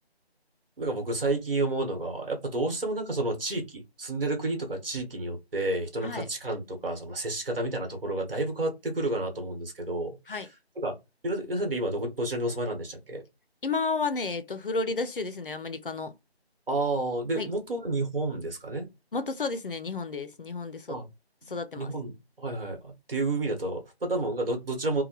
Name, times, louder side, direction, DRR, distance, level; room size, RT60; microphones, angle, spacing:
voice 1, 0.8-10.3 10.8-10.9 11.2-13.2 16.7-18.9 20.9-21.1 21.5-22.1 22.4-25.0, right 2 dB, 60° right, 1.3 m, -30 dB
voice 2, 13.6-16.1 17.4-17.5 19.1-21.0 21.5-21.9, left 4 dB, 55° left, 0.5 m, -32 dB
3.0 x 2.2 x 2.9 m
figure-of-eight pair, 165°, 32 cm